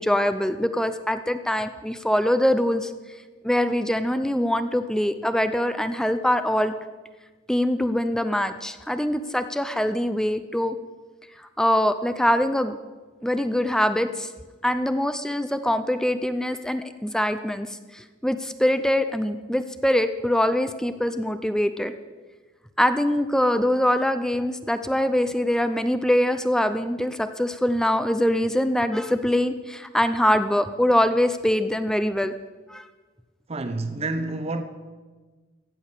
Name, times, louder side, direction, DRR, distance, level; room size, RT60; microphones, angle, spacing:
voice 1, 0.0-2.9 3.4-6.7 7.5-10.8 11.4-12.8 13.2-14.3 14.6-21.9 22.8-32.3 32.7-32.9, left 1 dB, 5° left, 0.5 m, -23 dB
voice 2, 33.5-34.6, right 2 dB, 30° right, 0.8 m, -28 dB
15.5 x 9.2 x 6.7 m
head